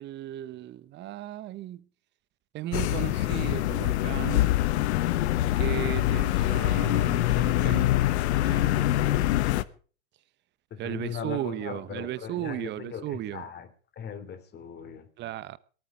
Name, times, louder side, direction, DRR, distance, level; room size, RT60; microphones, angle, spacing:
voice 1, 0.0-1.9 2.5-4.5 4.8-5.1 5.6-7.9 8.4-9.2 10.8-13.5 15.2-15.6, right 13 dB, 30° right, 1.0 m, -36 dB
sound 1, 2.7-9.6, left 14 dB, 60° left, 1.2 m, -24 dB
voice 2, 10.7-13.7 14.0-15.1, left 8 dB, 25° left, 3.1 m, -39 dB
18.5 x 13.0 x 4.9 m
hypercardioid pair, 120°, 38 cm